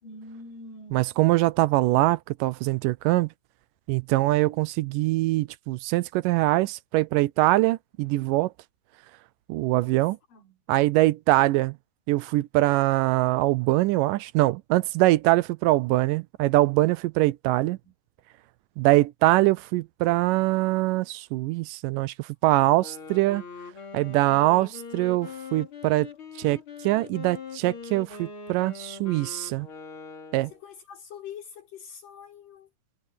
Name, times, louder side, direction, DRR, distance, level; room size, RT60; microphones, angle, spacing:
voice 1, 0.0-1.1 9.7-10.0 10.3-10.6 17.8-17.9 30.5-32.7, left 5 dB, 75° left, 7.3 m, -44 dB
voice 2, 0.9-3.3 3.9-8.5 9.5-10.2 10.7-11.8 12.1-17.8 18.8-23.4 23.9-26.1 26.4-29.7 30.3-30.5, right 18 dB, 85° right, 2.1 m, -23 dB
Wind instrument woodwind instrument, 22.6-30.6, left 5 dB, 40° left, 3.3 m, -42 dB
omnidirectional pair, 3.9 m